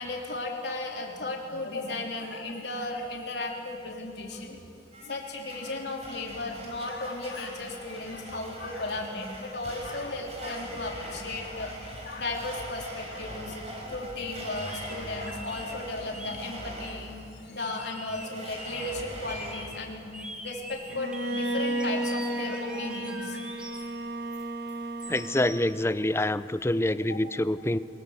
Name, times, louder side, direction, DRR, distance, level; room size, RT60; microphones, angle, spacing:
voice 1, 0.0-4.6 5.0-13.6 13.9-17.1 17.4-20.1 20.4-23.4, left 2 dB, 65° left, 1 dB, 3.4 m, -35 dB
Domestic sounds home sounds, 4.9-19.5, right 1 dB, 35° right, 5.1 m, -42 dB
sound 1, 14.2-14.3 14.5-14.9 15.3-15.7 16.1-16.4 16.8-16.9 17.7-18.3 18.6-19.0 19.3-19.8 20.1-23.9 24.3-25.5, equal, 5° right, 2.0 m, -43 dB
Bowed string instrument, 20.9-25.9, right 1 dB, 65° right, 1.5 m, -33 dB
voice 2, 25.1-27.8, left 1 dB, 15° left, 15 dB, 0.5 m, -26 dB
23.0 x 21.0 x 8.0 m, 2.5 s
head